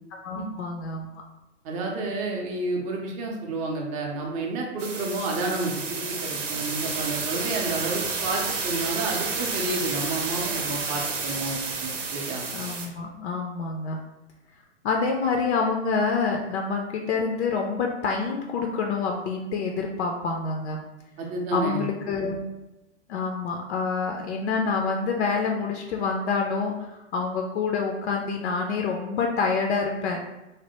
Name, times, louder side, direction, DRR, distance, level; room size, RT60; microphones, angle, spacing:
voice 1, 0.1-1.1 12.5-14.0 14.8-20.8 21.5-22.4 23.1-30.2, left 4 dB, 65° left, 1 dB, 0.5 m, -27 dB
voice 2, 1.6-12.4 21.2-21.8 22.1-22.2, right 2 dB, 20° right, 0 dB, 0.4 m, -30 dB
sound 1, 4.8-12.9, right 4 dB, 85° right, 0.7 m, -30 dB
3.2 x 2.0 x 2.9 m, 0.97 s
hypercardioid pair, 110°, 36 cm